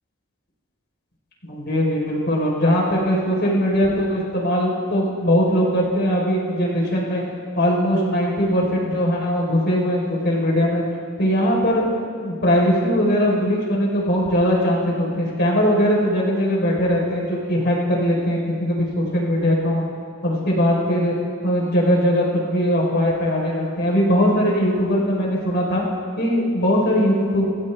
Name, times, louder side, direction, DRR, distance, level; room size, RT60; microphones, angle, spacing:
voice 1, 1.4-7.2 7.6-10.8 11.2-11.9 12.2-19.8 20.2-21.1 21.4-25.8 26.2-27.4, equal, 50° left, -2 dB, 3.9 m, -20 dB
26.5 x 14.5 x 3.4 m, 2.2 s
head